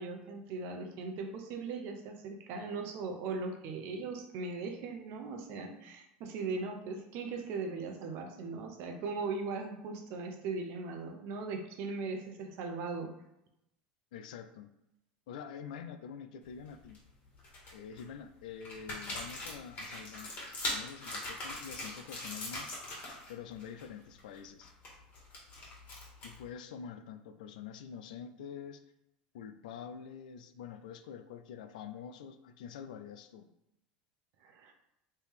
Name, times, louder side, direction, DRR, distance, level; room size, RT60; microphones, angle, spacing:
voice 1, 0.0-13.1 34.4-34.7, right 4 dB, 60° right, 4 dB, 0.7 m, -39 dB
voice 2, 14.1-14.7 15.3-17.0 17.7-20.4 20.7-22.7 23.3-24.7 26.2-28.8 29.3-33.5, left 7 dB, 85° left, 10 dB, 0.3 m, -46 dB
sound 1, 16.5-17.0 17.4-18.0 18.6-23.3 23.6-23.8 24.2-26.5, left 2 dB, 40° left, 1.5 m, -41 dB
3.2 x 2.7 x 3.6 m, 0.84 s
supercardioid pair, 100°, 4 cm